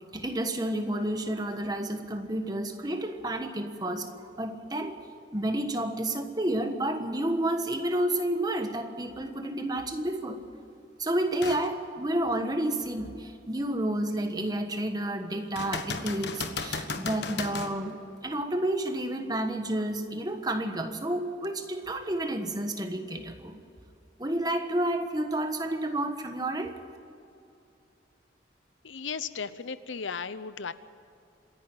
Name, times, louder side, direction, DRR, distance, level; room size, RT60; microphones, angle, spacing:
voice 1, 0.1-5.0 5.3-10.4 11.0-18.0 18.2-23.6 24.2-26.7, right 1 dB, 20° right, 6 dB, 1.4 m, -30 dB
sound 1, 11.4-11.7 12.3-12.4 15.6-17.8 21.4-21.5, left 4 dB, 65° left, 1.4 m, -35 dB
voice 2, 28.8-30.7, left 6 dB, 85° left, 14 dB, 0.8 m, -35 dB
26.5 x 11.0 x 9.1 m, 2.7 s
head